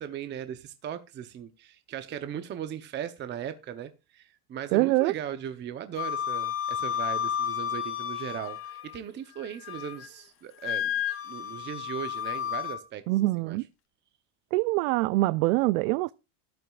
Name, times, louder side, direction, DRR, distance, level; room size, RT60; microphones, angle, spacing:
voice 1, 0.0-10.9 11.3-13.6, right 9 dB, 25° right, 0.7 m, -38 dB
voice 2, 4.7-5.1 13.1-13.6 14.5-16.1, right 19 dB, 85° right, 0.5 m, -24 dB
Wind instrument woodwind instrument, 6.0-9.0 9.4-10.1 10.6-12.8, left 9 dB, 35° left, 1.5 m, -32 dB
14.0 x 11.5 x 2.3 m
cardioid pair, 145°, 40 cm